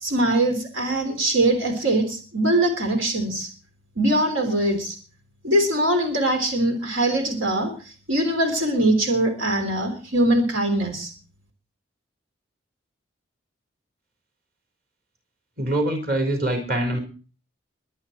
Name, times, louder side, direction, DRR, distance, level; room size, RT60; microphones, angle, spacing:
voice 1, 0.0-3.5 4.0-5.0 5.4-11.1, right 1 dB, 85° right, 5 dB, 3.6 m, -22 dB
voice 2, 15.6-17.0, right 1 dB, 50° right, 4 dB, 4.2 m, -24 dB
23.0 x 8.8 x 4.5 m, 0.37 s
head